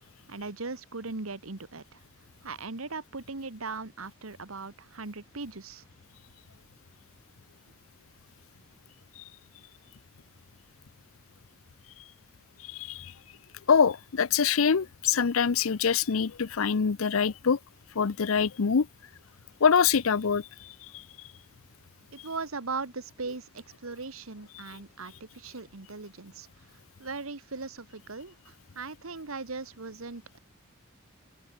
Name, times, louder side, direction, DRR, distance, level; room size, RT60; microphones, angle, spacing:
voice 1, 0.3-2.0 2.4-5.8 22.1-30.4, right 4 dB, 85° right, 1.7 m, -39 dB
voice 2, 12.6-13.1 13.7-17.6 18.0-18.9 19.6-21.0, left 6 dB, 75° left, 0.6 m, -25 dB
open air
head